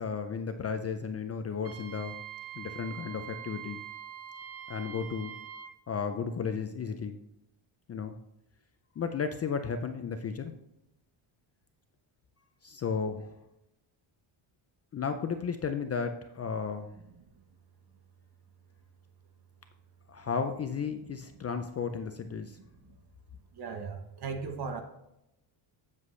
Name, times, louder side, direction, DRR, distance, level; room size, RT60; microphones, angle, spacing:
voice 1, 0.0-2.2 2.6-3.8 4.7-5.3 5.9-7.2 7.9-8.2 9.0-10.5 12.6-13.4 14.9-16.9 20.1-22.6, left 6 dB, 35° left, 7 dB, 0.4 m, -34 dB
Wind instrument woodwind instrument, 1.6-5.8, right 10 dB, 30° right, 0.5 m, -44 dB
voice 2, 23.5-24.8, right 5 dB, 50° right, 6 dB, 1.1 m, -37 dB
8.0 x 7.4 x 3.1 m, 0.86 s
cardioid pair, 155°, 49 cm